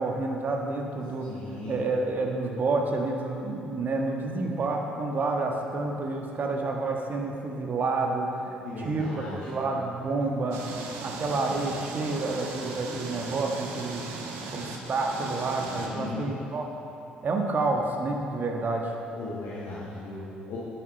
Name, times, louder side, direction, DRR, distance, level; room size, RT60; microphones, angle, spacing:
voice 1, 0.0-10.6 11.0-14.0 14.5-16.7 17.2-18.9, right 3 dB, 40° right, 1 dB, 1.4 m, -29 dB
voice 2, 1.3-1.7 8.6-9.4 15.7-16.2 19.2-20.6, left 2 dB, 55° left, -7 dB, 1.6 m, -37 dB
sound 1, 10.5-15.9, right 4 dB, 60° right, 1.1 m, -38 dB
10.0 x 9.3 x 4.2 m, 2.9 s
figure-of-eight pair, 50°, 5 cm